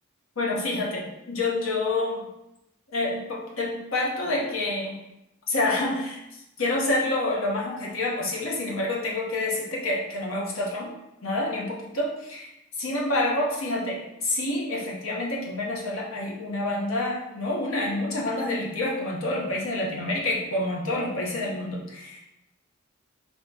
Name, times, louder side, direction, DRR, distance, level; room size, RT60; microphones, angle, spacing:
voice 1, 0.4-2.3 2.9-4.9 5.5-10.9 11.2-12.5 12.8-22.2, left 2 dB, 80° left, -2 dB, 1.1 m, -28 dB
4.0 x 2.9 x 4.0 m, 0.88 s
head